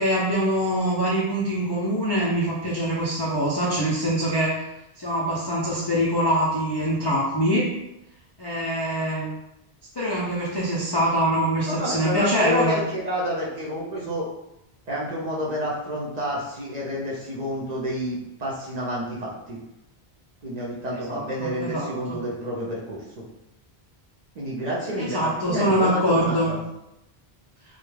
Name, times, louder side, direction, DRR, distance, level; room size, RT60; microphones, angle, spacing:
voice 1, 0.0-4.6 5.0-7.7 8.4-9.4 10.0-12.8 21.1-22.2 25.0-26.5, equal, 40° left, -7 dB, 0.3 m, -24 dB
voice 2, 11.7-14.2 14.9-19.6 20.4-23.2 24.4-26.6, equal, 50° right, -5 dB, 0.5 m, -29 dB
2.2 x 2.1 x 3.1 m, 0.88 s
omnidirectional pair, 1.1 m